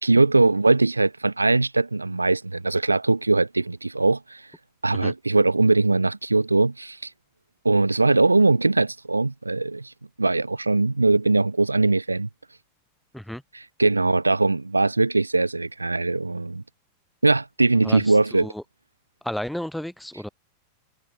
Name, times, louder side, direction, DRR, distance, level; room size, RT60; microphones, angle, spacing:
voice 1, 0.0-4.5 4.8-7.1 7.6-9.9 10.2-12.3 13.5-16.6 17.2-18.5, right 3 dB, 80° right, 1.9 m, -21 dB
voice 2, 17.8-18.6 19.2-20.3, left 1 dB, ahead, 1.7 m, -32 dB
figure-of-eight pair, 90°, 0 cm